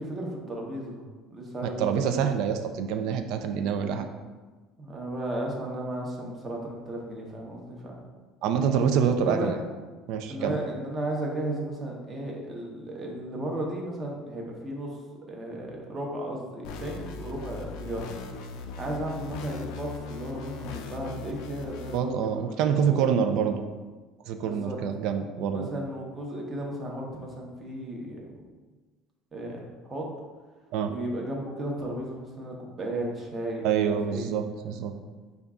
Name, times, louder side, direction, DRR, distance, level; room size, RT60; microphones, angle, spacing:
voice 1, 0.0-2.3 4.8-8.0 8.9-9.0 9.3-9.5 10.3-15.0 15.3-18.1 18.8-23.1 24.4-24.8 25.5-28.4 29.3-30.1 30.9-34.3, right 1 dB, 20° right, -1 dB, 0.8 m, -35 dB
voice 2, 1.8-4.1 8.4-9.6 10.1-10.6 21.9-23.6 24.3-25.7 30.7-30.9 33.6-34.9, right 7 dB, 65° right, 7 dB, 0.4 m, -26 dB
sound 1, 16.6-22.0, left 5 dB, 70° left, 0.4 m, -39 dB
5.3 x 2.3 x 3.6 m, 1.3 s
cardioid pair, 150°, 0 cm